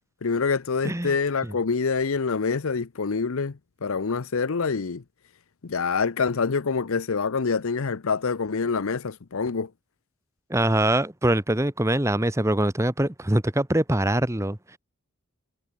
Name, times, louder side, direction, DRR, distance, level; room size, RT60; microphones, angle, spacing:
voice 1, 0.2-5.0 5.6-9.7, left 5 dB, 70° left, 0.7 m, -26 dB
voice 2, 10.5-14.8, right 1 dB, 15° right, 1.1 m, -23 dB
head